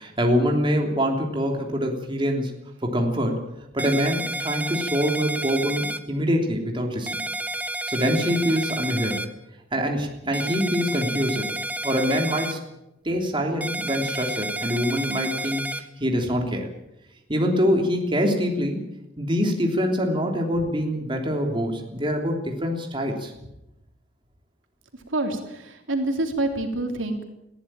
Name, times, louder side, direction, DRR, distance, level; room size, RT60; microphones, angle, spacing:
voice 1, 0.0-2.5 2.8-3.4 3.7-7.2 7.9-9.2 9.7-11.5 11.8-12.6 13.0-16.7 17.3-18.9 19.2-23.3, equal, 25° right, 2 dB, 3.3 m, -24 dB
sound 1, 3.8-6.0 7.1-9.3 10.3-12.5 13.6-15.8, right 1 dB, 10° right, 1.2 m, -30 dB
voice 2, 25.1-27.3, right 2 dB, 85° right, 4 dB, 3.3 m, -27 dB
21.0 x 15.5 x 9.0 m, 0.88 s
head